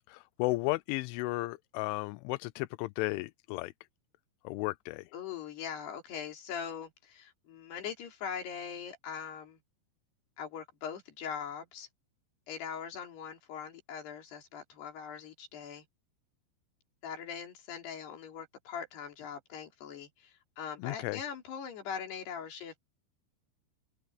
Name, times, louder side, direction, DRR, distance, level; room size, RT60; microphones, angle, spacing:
voice 1, 0.1-3.7 4.4-5.1 20.8-21.2, left 22 dB, 85° left, 3.0 m, -34 dB
voice 2, 5.1-9.6 10.4-11.9 12.5-15.9 17.0-22.8, left 7 dB, 60° left, 5.3 m, -41 dB
omnidirectional pair, 5.5 m